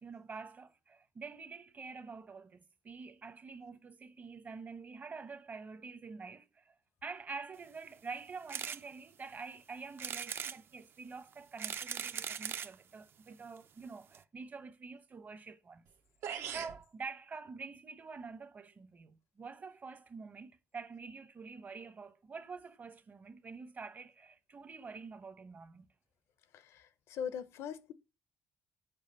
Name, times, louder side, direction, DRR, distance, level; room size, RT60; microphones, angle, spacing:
voice 1, 0.0-6.7 7.0-15.9 16.5-25.9, right 4 dB, 40° right, 1.0 m, -47 dB
sound 1, 8.5-8.8 9.3-9.4 10.0-10.6 11.3-12.8 13.6-13.7 13.8-13.9 14.1-14.2, right 7 dB, 55° right, 0.7 m, -39 dB
sound 2, 15.9-16.0 16.2-16.8, right 8 dB, 75° right, 1.1 m, -40 dB
voice 2, 26.5-27.9, left 8 dB, 80° left, 0.8 m, -41 dB
7.2 x 5.0 x 5.4 m
cardioid pair, 85°, 5 cm